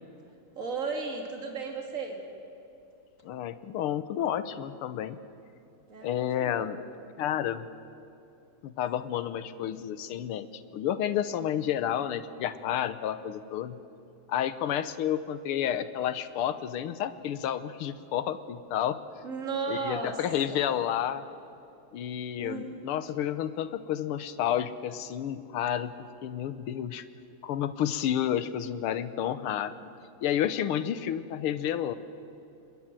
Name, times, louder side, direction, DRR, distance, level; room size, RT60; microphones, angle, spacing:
voice 1, 0.6-2.2 5.9-6.7 19.2-20.2 20.5-20.7 22.4-22.7, right 4 dB, 35° right, 2 dB, 3.1 m, -35 dB
voice 2, 3.2-5.2 6.0-6.8 7.2-7.7 8.6-10.5 10.7-13.8 14.3-19.0 19.7-21.2 21.9-26.0 26.2-27.1 27.4-29.9 30.2-32.0, left 10 dB, 80° left, 12 dB, 1.8 m, -30 dB
27.0 x 22.0 x 7.7 m, 2.8 s
omnidirectional pair, 2.4 m